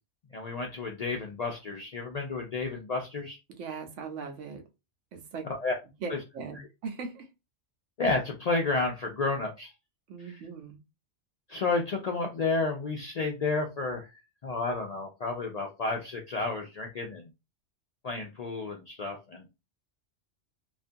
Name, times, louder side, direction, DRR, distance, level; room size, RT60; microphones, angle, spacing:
voice 1, 0.3-3.4 5.4-5.7 6.1-6.2 8.0-9.7 11.5-17.3 18.0-19.4, left 3 dB, 80° left, 0.3 m, -31 dB
voice 2, 3.6-4.6 5.1-5.4 6.0-7.3 10.1-10.8, right 5 dB, 85° right, 1.0 m, -39 dB
2.4 x 2.3 x 2.6 m
omnidirectional pair, 1.2 m